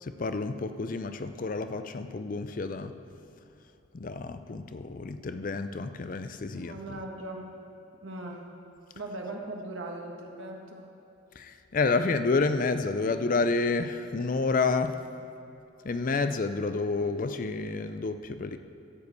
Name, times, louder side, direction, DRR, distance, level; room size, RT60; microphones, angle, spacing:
voice 1, 0.0-3.0 3.9-7.0 11.4-15.0 15.8-18.6, left 3 dB, 40° left, 9 dB, 0.4 m, -29 dB
voice 2, 6.6-7.5 8.0-8.4 8.9-10.9, right 2 dB, 75° right, 0 dB, 1.6 m, -39 dB
13.5 x 5.2 x 8.2 m, 2.8 s
head